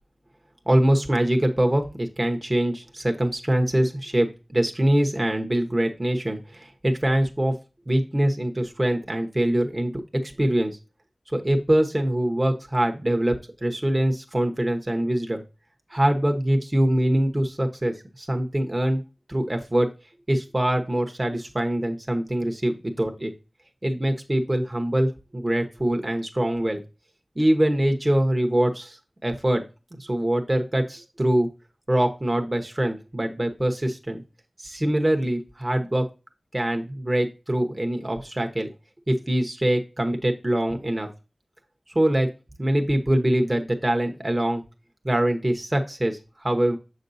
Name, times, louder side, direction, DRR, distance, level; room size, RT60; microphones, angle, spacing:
voice 1, 0.7-7.5 7.9-9.9 10.2-10.7 11.3-15.4 15.9-19.0 19.3-19.9 20.3-23.3 23.8-26.8 27.4-29.6 30.0-31.5 31.9-34.2 34.6-36.0 36.5-38.7 39.1-41.1 41.9-42.3 42.6-44.6 45.0-46.8, right 1 dB, 25° right, 4 dB, 0.9 m, -23 dB
7.1 x 5.2 x 2.6 m, 0.30 s
wide cardioid pair, 80°, 0 cm